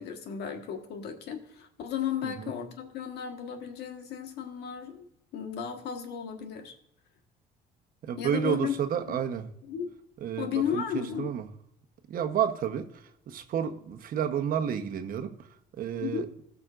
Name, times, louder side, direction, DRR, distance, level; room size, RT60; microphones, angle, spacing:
voice 1, 0.0-5.1 5.3-6.7 8.2-8.8 9.7-9.9 10.4-11.3 16.0-16.3, left 8 dB, 80° left, 5 dB, 1.5 m, -34 dB
voice 2, 2.2-2.5 8.0-9.5 10.2-11.5 12.1-15.5 15.7-16.3, right 8 dB, 55° right, 6 dB, 1.1 m, -31 dB
18.0 x 6.1 x 2.5 m, 0.74 s
cardioid pair, 110°, 17 cm